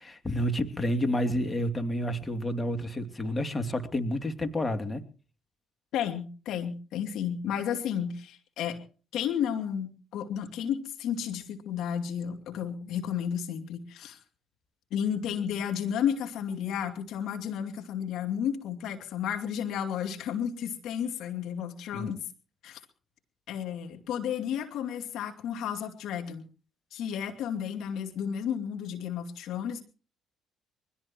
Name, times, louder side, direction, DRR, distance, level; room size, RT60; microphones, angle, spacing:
voice 1, 0.0-5.0 21.9-22.1, equal, 20° left, 7 dB, 2.7 m, -30 dB
voice 2, 5.9-8.8 9.1-14.2 14.9-22.2 22.6-22.8 23.5-26.4 26.9-29.8, left 8 dB, 70° left, 5 dB, 2.6 m, -32 dB
24.0 x 17.5 x 3.0 m, 0.39 s
hypercardioid pair, 60°, 0 cm